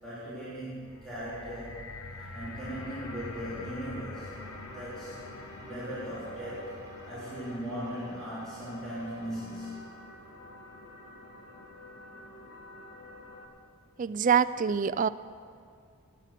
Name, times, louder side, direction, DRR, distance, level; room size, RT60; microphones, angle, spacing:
voice 1, 0.0-1.8 2.3-4.3 4.7-5.2 5.6-9.8, equal, 5° left, -12 dB, 3.8 m, -38 dB
sound 1, 0.7-11.0 11.7-11.8, left 2 dB, 80° left, 1.1 m, -47 dB
sound 2, 2.6-13.5, equal, 60° left, 2.0 m, -50 dB
sound 3, 4.2-9.8, equal, 15° right, 2.1 m, -54 dB
voice 2, 14.0-15.1, right 7 dB, 35° right, 15 dB, 0.3 m, -25 dB
17.0 x 9.0 x 5.9 m, 2.2 s
head